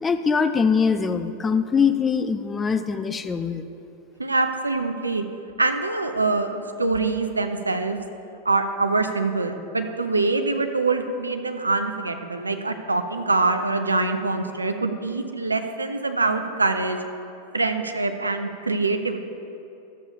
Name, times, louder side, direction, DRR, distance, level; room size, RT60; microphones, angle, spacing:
voice 1, 0.0-3.6, left 5 dB, 15° left, 9 dB, 0.4 m, -22 dB
voice 2, 4.2-5.2 5.6-8.0 8.5-17.0 17.5-19.2, right 3 dB, 80° right, 7 dB, 0.5 m, -24 dB
12.5 x 7.1 x 2.8 m, 2.8 s
figure-of-eight pair, 90°, 0 cm